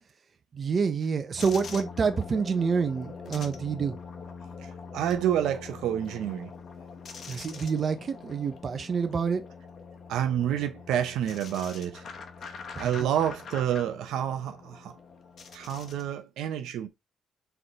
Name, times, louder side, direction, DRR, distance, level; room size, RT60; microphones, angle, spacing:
voice 1, 0.5-4.0 7.3-9.4 12.7-13.1, right 5 dB, 45° right, 0.8 m, -28 dB
sound 1, 1.4-16.1, left 5 dB, 55° left, 1.0 m, -43 dB
voice 2, 4.9-6.5 10.1-12.0 12.8-15.0 15.5-16.9, right 10 dB, 85° right, 0.7 m, -28 dB
4.0 x 3.4 x 2.9 m
cardioid pair, 90°, 0 cm